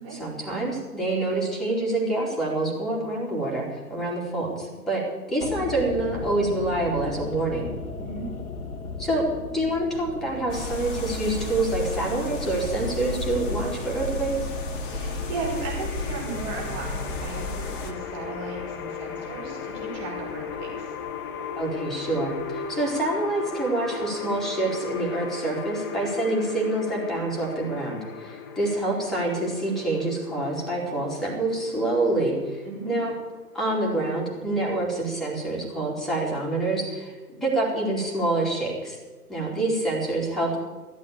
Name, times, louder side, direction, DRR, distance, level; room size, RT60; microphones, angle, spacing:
voice 1, 0.1-7.7 9.0-9.3 9.5-14.5 21.6-33.1 33.5-37.1 37.4-39.0 39.3-40.6, right 2 dB, ahead, -4 dB, 2.9 m, -27 dB
sound 1, 5.4-23.6 23.9-24.0, left 3 dB, 65° left, 1.4 m, -40 dB
sound 2, 10.5-17.9, left 2 dB, 35° left, 1.8 m, -32 dB
sound 3, 14.8-33.8, left 6 dB, 15° left, 0.7 m, -37 dB
voice 2, 14.9-20.9 32.6-32.9, right 3 dB, 30° right, -2 dB, 5.7 m, -36 dB
13.5 x 8.3 x 8.8 m, 1.2 s
figure-of-eight pair, 130°, 47 cm